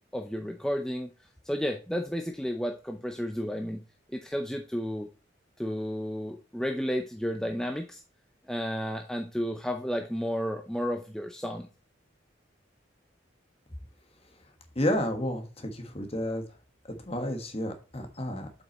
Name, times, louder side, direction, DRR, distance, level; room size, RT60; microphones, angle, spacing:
voice 1, 0.1-1.1 1.5-3.8 4.1-5.1 5.6-8.0 8.5-11.7, equal, 5° left, 4 dB, 0.5 m, -32 dB
voice 2, 14.7-16.4 16.9-18.6, left 1 dB, 30° left, 5 dB, 1.4 m, -31 dB
7.8 x 5.5 x 2.9 m, 0.33 s
head